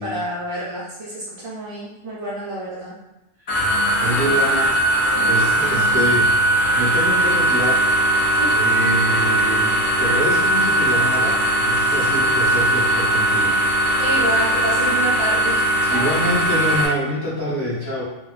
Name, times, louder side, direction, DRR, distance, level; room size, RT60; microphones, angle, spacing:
voice 1, 0.0-2.9 5.1-5.4 8.4-8.6 14.0-16.2, equal, 60° right, -7 dB, 0.3 m, -29 dB
sound 1, 3.5-16.9, right 1 dB, 60° left, 0.4 m, -19 dB
voice 2, 4.0-4.8 5.2-6.3 6.7-7.8 8.5-13.6 15.9-18.0, equal, 20° left, -9 dB, 0.9 m, -26 dB
2.4 x 2.1 x 2.3 m, 0.91 s
omnidirectional pair, 1.2 m